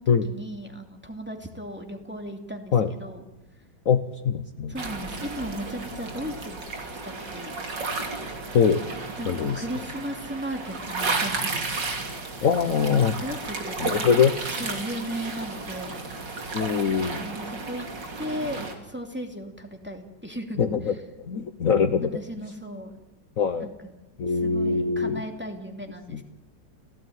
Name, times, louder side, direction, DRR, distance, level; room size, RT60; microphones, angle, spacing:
voice 1, 0.0-3.2 4.7-6.7 7.0-7.6 9.2-11.7 13.2-14.0 14.5-16.0 17.2-17.9 18.2-20.6 22.0-23.0 23.6-23.7 24.3-26.2, equal, 5° right, 3 dB, 2.6 m, -36 dB
voice 2, 3.8-4.7 8.5-8.8 9.3-9.6 12.4-13.2 13.8-14.3 16.5-17.2 20.6-20.9 21.3-22.1 23.4-23.7 24.2-25.2 26.1-26.2, left 6 dB, 50° left, 9 dB, 1.3 m, -23 dB
sound 1, 4.8-18.7, right 3 dB, 70° right, 3.5 m, -33 dB
29.5 x 16.0 x 9.5 m, 1.1 s
omnidirectional pair, 2.0 m